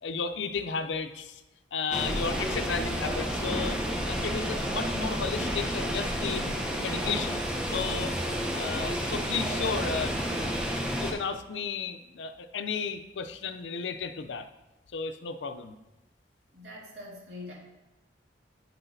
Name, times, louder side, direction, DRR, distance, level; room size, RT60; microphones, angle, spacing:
voice 1, 0.0-1.4 1.7-3.8 4.1-8.1 8.5-10.5 11.0-14.5 14.9-15.7, left 5 dB, 80° left, 9 dB, 0.5 m, -33 dB
sound 1, 1.9-11.1, equal, 5° right, 0.7 m, -30 dB
voice 2, 16.5-17.5, left 2 dB, 65° right, -5 dB, 2.2 m, -43 dB
8.8 x 5.9 x 2.7 m, 1.0 s
head